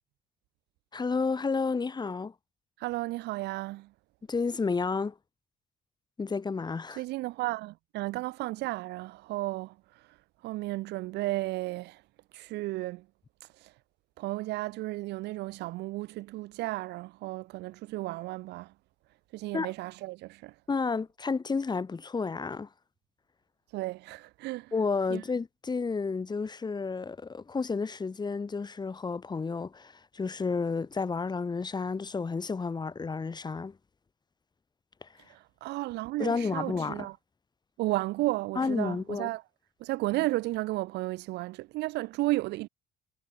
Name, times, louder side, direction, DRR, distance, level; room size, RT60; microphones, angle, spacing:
voice 1, 0.9-2.3 4.3-5.1 6.2-7.0 19.5-19.7 20.7-22.7 24.7-33.8 35.0-35.1 36.2-37.1 38.6-39.3, left 4 dB, 25° left, 3.2 m, -31 dB
voice 2, 2.8-3.9 7.0-10.2 10.4-12.0 12.3-13.1 13.6-13.7 14.2-18.7 19.3-20.5 23.7-24.7 25.1-25.2 35.3-37.2 37.8-39.4 39.8-42.7, right 19 dB, 85° right, 4.7 m, -33 dB
cardioid pair, 110°, 17 cm